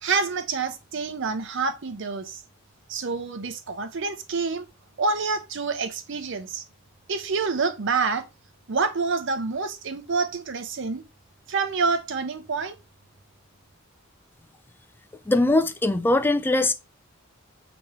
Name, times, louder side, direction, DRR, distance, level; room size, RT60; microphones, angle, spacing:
voice 1, 0.0-2.4 2.9-4.6 5.0-6.6 7.1-8.2 8.7-11.0 11.5-12.7, right 4 dB, 60° right, 0.7 m, -27 dB
voice 2, 15.3-16.7, left 2 dB, 10° left, 0.3 m, -21 dB
5.2 x 3.0 x 3.0 m
head